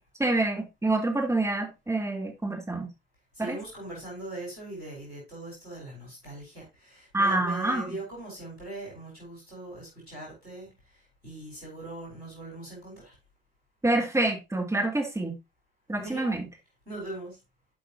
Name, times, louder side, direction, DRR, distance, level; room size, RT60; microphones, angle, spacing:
voice 1, 0.2-2.9 3.4-3.6 7.1-7.9 13.8-15.3 15.9-16.4, right 2 dB, 10° right, 2.2 m, -27 dB
voice 2, 3.3-13.2 16.0-16.3 16.9-17.4, right 2 dB, 85° right, 4.4 m, -41 dB
11.5 x 5.3 x 2.7 m
figure-of-eight pair, 45°, 31 cm